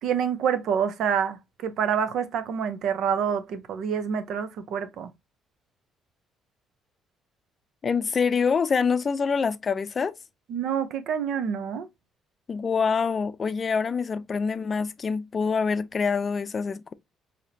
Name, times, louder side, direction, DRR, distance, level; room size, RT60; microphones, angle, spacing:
voice 1, 0.0-5.1 10.5-11.9, right 7 dB, 70° right, 0.7 m, -27 dB
voice 2, 7.8-10.1 12.5-16.9, left 5 dB, 40° left, 0.5 m, -25 dB
4.9 x 2.9 x 2.7 m
supercardioid pair, 80°, 0 cm